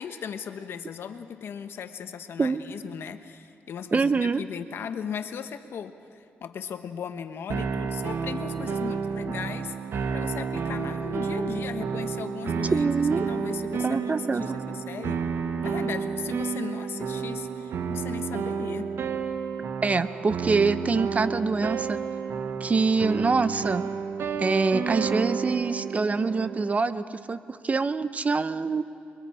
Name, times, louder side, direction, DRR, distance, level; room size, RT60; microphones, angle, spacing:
voice 1, 0.0-9.8 10.1-12.9 13.3-15.2 15.6-18.9, left 7 dB, 70° left, 9 dB, 1.1 m, -37 dB
voice 2, 3.9-4.4 12.7-13.2 13.8-14.4 19.8-22.0 22.6-23.9 24.4-28.8, right 4 dB, 35° right, 13 dB, 0.8 m, -25 dB
sound 1, 7.5-26.7, right 6 dB, 70° right, 1.2 m, -31 dB
27.5 x 23.0 x 4.9 m, 2.5 s
cardioid pair, 75°, 4 cm